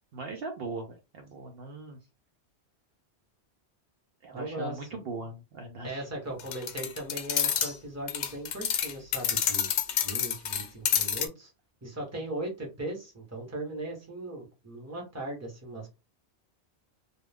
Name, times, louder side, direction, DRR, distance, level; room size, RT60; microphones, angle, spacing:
voice 1, 0.1-2.0 4.2-6.0, right 3 dB, 65° right, 3 dB, 0.8 m, -39 dB
voice 2, 4.3-4.9 5.8-9.7 10.0-11.5 11.8-15.9, right 1 dB, 15° right, -1 dB, 0.9 m, -38 dB
sound 1, 6.4-7.7 8.1-11.3, left 9 dB, 80° left, 0.8 m, -28 dB
2.3 x 2.3 x 3.3 m, 0.27 s
omnidirectional pair, 1.1 m